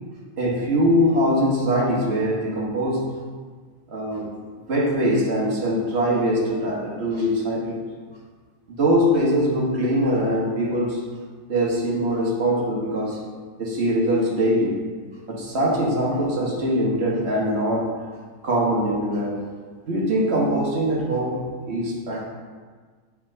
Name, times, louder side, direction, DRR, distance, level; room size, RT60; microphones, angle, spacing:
voice 1, 0.4-3.1 3.9-4.3 4.7-7.8 8.7-11.0 11.5-13.2 13.6-14.7 15.3-17.9 18.4-19.4 19.8-22.3, equal, 40° right, -4 dB, 1.0 m, -22 dB
5.8 x 3.5 x 5.4 m, 1.5 s
omnidirectional pair, 2.3 m